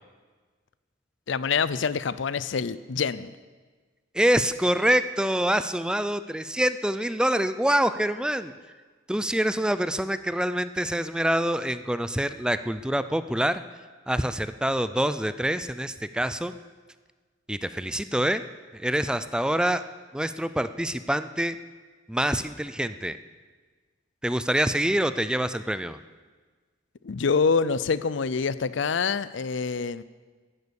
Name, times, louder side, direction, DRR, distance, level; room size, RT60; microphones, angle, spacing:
voice 1, 1.3-3.3 27.0-30.0, left 5 dB, 70° left, 16 dB, 0.5 m, -26 dB
voice 2, 4.1-8.5 9.1-13.6 14.1-16.5 17.5-18.4 18.7-19.8 20.1-21.6 22.1-23.2 24.2-26.0, right 1 dB, 5° right, 12 dB, 0.4 m, -26 dB
15.0 x 11.0 x 7.0 m, 1.4 s
head